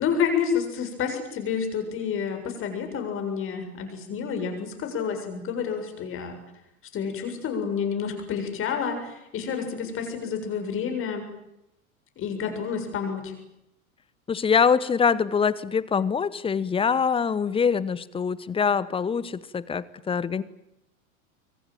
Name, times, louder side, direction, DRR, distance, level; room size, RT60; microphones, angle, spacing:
voice 1, 0.0-6.4 6.9-11.3 12.2-13.3, left 6 dB, 30° left, 6 dB, 7.2 m, -29 dB
voice 2, 14.3-20.4, left 6 dB, 15° left, 20 dB, 1.0 m, -24 dB
25.5 x 24.0 x 9.1 m, 0.83 s
figure-of-eight pair, 90°, 42 cm